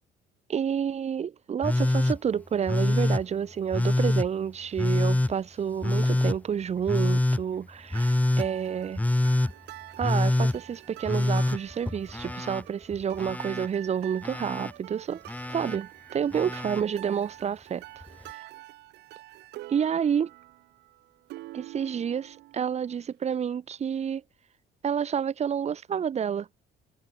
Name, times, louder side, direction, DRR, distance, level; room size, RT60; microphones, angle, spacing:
voice 1, 0.5-9.0 10.0-15.2 15.5-17.8 18.3-18.4 19.7-20.3 21.5-24.2 24.8-26.5, right 8 dB, 40° right, 1.4 m, -29 dB
Telephone, 1.6-2.2 2.7-3.2 3.7-4.3 4.8-5.3 5.8-6.4 6.9-7.4 7.9-8.5 9.0-9.5 10.0-10.6 11.1-12.6 12.9-13.7 14.2-14.7 15.3-15.8 16.3-16.8 18.0-18.1, left 1 dB, 10° left, 4.1 m, -25 dB
sound 1, 7.9-23.0, right 18 dB, 85° right, 5.4 m, -47 dB
cardioid pair, 110°, 17 cm